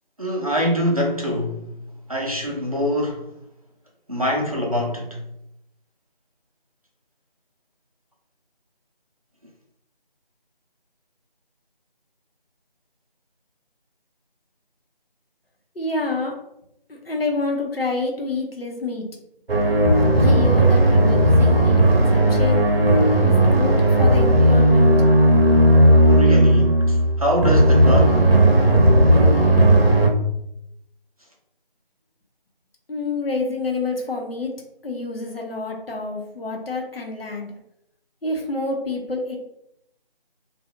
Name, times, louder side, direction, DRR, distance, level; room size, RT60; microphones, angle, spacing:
voice 1, 0.2-1.7 2.1-3.3 4.1-5.2 26.1-28.4, equal, 40° right, 0.6 m, -24 dB
voice 2, 15.7-16.3 16.9-19.1 20.2-22.6 23.2-24.9 32.9-34.5 34.8-37.5 38.2-39.4, left 3 dB, 75° left, 0.9 m, -28 dB
sound 1, 19.5-30.1, right 1 dB, 80° right, 0.7 m, -15 dB
2.6 x 2.3 x 2.7 m
figure-of-eight pair, 170°, 29 cm